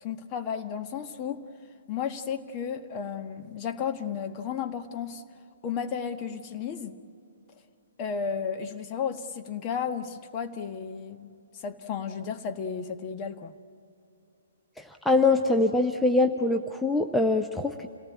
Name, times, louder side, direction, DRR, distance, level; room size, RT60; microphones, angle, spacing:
voice 1, 0.0-1.4 1.9-5.2 5.6-7.0 8.0-13.6, left 7 dB, 30° left, 6 dB, 1.4 m, -33 dB
voice 2, 14.8-17.9, left 2 dB, 5° left, 5 dB, 0.8 m, -23 dB
28.5 x 18.5 x 8.6 m, 2.5 s
figure-of-eight pair, 125°, 0 cm